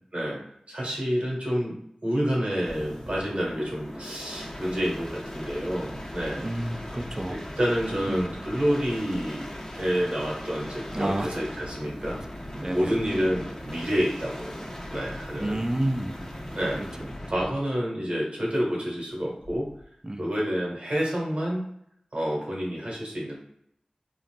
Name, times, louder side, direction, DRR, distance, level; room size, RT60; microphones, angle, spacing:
voice 1, 0.7-1.7 2.0-6.5 7.3-12.2 12.7-15.6 16.5-16.8 17.3-19.7 20.2-21.6 22.1-23.3, equal, 65° right, -4 dB, 1.3 m, -28 dB
sound 1, 2.5-17.6 19.4-19.8, equal, 30° left, 0.9 m, -39 dB
voice 2, 6.4-7.4 8.1-8.3 10.9-11.4 12.5-13.0 15.4-16.3 16.8-17.1 20.0-20.3, right 1 dB, 25° right, 6 dB, 0.4 m, -30 dB
3.8 x 2.4 x 2.2 m, 0.73 s
wide cardioid pair, 40°, 2 cm